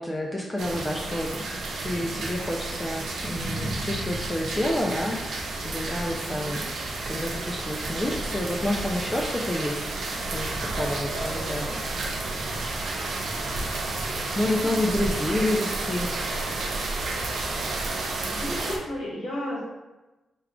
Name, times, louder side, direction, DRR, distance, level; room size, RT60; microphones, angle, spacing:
voice 1, 0.0-6.6 7.1-9.8 10.1-11.8 14.3-16.1, left 1 dB, 15° left, -1 dB, 0.3 m, -29 dB
voice 2, 0.6-1.0 6.3-6.6 14.4-15.5 18.3-19.6, left 1 dB, 85° left, -5 dB, 1.2 m, -35 dB
sound 1, 0.6-18.8, right 2 dB, 75° right, 0.5 m, -31 dB
3.5 x 2.3 x 3.5 m, 1.1 s
wide cardioid pair, 120°, 0 cm